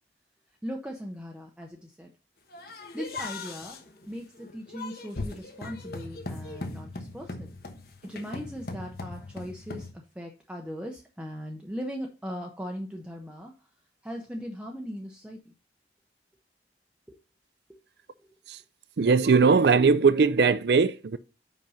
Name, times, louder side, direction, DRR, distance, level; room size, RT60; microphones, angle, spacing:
voice 1, 0.6-2.1 2.9-7.5 8.0-13.5 14.0-15.5 17.1-17.2 18.2-18.3, equal, 5° right, 0.7 m, -39 dB
sound 1, 2.5-9.9, left 2 dB, 60° left, 1.1 m, -39 dB
voice 2, 19.0-21.2, right 5 dB, 65° right, 0.4 m, -20 dB
5.4 x 5.2 x 5.5 m
head